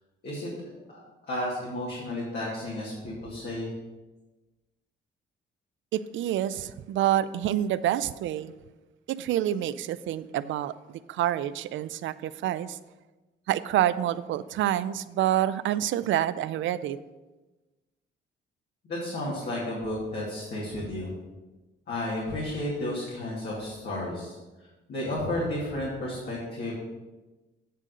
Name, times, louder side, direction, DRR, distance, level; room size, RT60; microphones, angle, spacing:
voice 1, 0.2-3.7 18.9-21.1 21.9-24.4 24.9-26.7, left 1 dB, 55° left, -6 dB, 2.3 m, -32 dB
voice 2, 5.9-8.5 9.1-10.7 11.1-12.8 13.5-17.0, right 12 dB, 75° right, 15 dB, 0.4 m, -27 dB
9.0 x 3.7 x 6.7 m, 1.1 s
cardioid pair, 90°, 20 cm